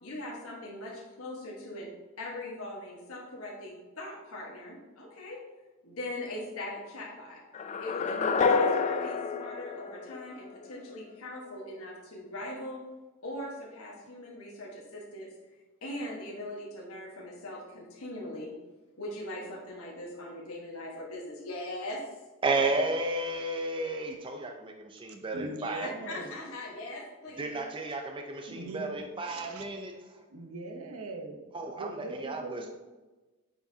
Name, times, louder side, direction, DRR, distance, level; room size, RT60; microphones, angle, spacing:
voice 1, 0.0-1.9 2.2-5.4 5.8-7.4 7.8-12.8 13.2-15.3 15.8-18.5 19.0-22.0 22.5-22.6 25.8-27.6, left 1 dB, 80° left, -2 dB, 1.3 m, -40 dB
sound 1, 7.5-10.6, left 5 dB, 35° left, 0.3 m, -28 dB
voice 2, 22.4-25.9 27.4-29.9 31.5-32.7, right 2 dB, 25° right, 3 dB, 0.5 m, -32 dB
voice 3, 25.3-26.3 28.5-29.6 30.3-31.5 31.8-32.7, right 2 dB, 85° right, 5 dB, 0.8 m, -41 dB
8.8 x 4.7 x 2.7 m, 1.2 s
head